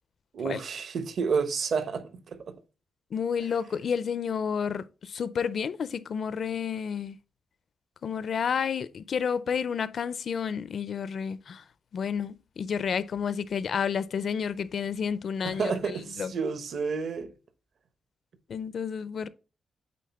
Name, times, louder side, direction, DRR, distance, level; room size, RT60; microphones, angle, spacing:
voice 1, 0.3-2.5 15.4-17.3, right 5 dB, 55° right, 0.9 m, -30 dB
voice 2, 3.1-7.2 8.0-11.6 11.9-16.3 18.5-19.3, left 7 dB, 50° left, 0.4 m, -30 dB
8.4 x 4.1 x 4.2 m
wide cardioid pair, 180°, 0 cm